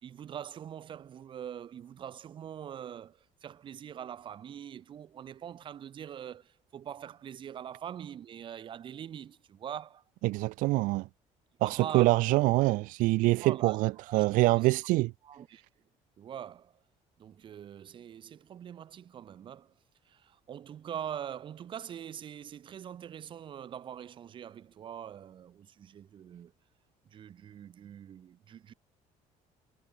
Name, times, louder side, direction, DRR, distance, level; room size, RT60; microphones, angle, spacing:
voice 1, 0.0-10.0 11.6-12.1 13.4-14.3 14.5-14.7 15.2-15.6 16.2-16.7 17.2-19.7 20.1-26.5 27.0-28.7, right 9 dB, 35° right, 4.3 m, -43 dB
voice 2, 10.2-11.1 11.6-15.1, right 21 dB, 80° right, 0.7 m, -25 dB
cardioid pair, 170°, 14 cm